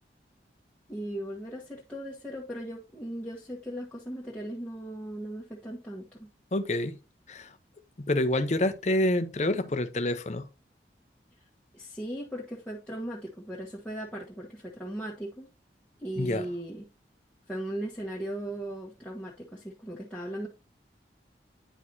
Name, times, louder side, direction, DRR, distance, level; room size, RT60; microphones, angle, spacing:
voice 1, 0.9-6.3 11.7-15.5 16.0-16.9 17.5-20.5, right 1 dB, 5° left, 1.2 m, -38 dB
voice 2, 6.5-7.0 7.3-7.5 8.0-10.5 16.1-16.5, left 1 dB, 40° left, 0.7 m, -27 dB
10.0 x 4.7 x 2.7 m
head